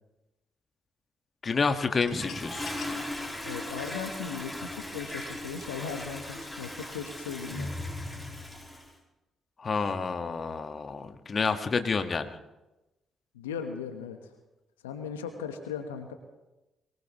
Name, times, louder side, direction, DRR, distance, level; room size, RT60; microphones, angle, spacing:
voice 1, 1.4-2.7 9.6-12.4, left 4 dB, 45° left, 8 dB, 1.5 m, -29 dB
sound 1, 1.8-4.5, left 7 dB, 60° left, 2.2 m, -48 dB
Toilet flush, 2.1-8.9, left 1 dB, 5° left, 6.6 m, -38 dB
voice 2, 3.4-7.7 13.3-14.3 14.8-16.1, left 6 dB, 85° left, 7 dB, 1.0 m, -38 dB
23.5 x 18.5 x 3.0 m, 1.0 s
hypercardioid pair, 45°, 0 cm